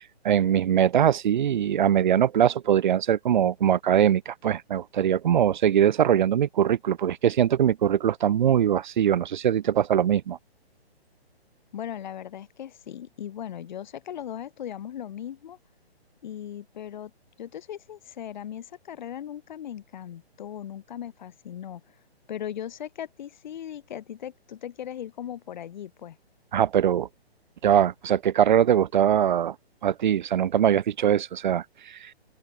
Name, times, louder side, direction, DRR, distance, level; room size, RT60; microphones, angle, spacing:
voice 1, 0.0-10.4 26.5-27.1 27.6-29.6 29.8-32.1, right 10 dB, 45° right, 5.3 m, -22 dB
voice 2, 11.7-15.6 16.2-17.1 17.4-21.8 22.3-26.2, left 10 dB, 45° left, 5.7 m, -38 dB
open air
hypercardioid pair, 160°, 32 cm